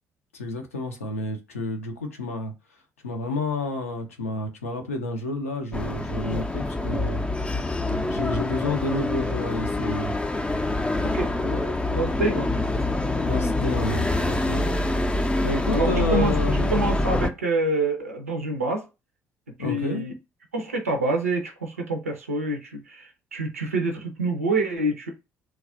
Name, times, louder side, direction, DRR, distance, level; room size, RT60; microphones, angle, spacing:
voice 1, 0.3-2.5 3.0-7.2 8.1-10.1 13.2-14.8 15.4-17.1 19.6-20.0, left 2 dB, 80° left, 0.5 m, -30 dB
sound 1, 5.7-17.3, left 2 dB, 15° left, 0.4 m, -25 dB
voice 2, 11.0-13.3 15.4-18.8 19.6-20.1 20.5-25.1, right 2 dB, 85° right, 0.4 m, -27 dB
3.0 x 2.3 x 2.4 m
figure-of-eight pair, 45°, 7 cm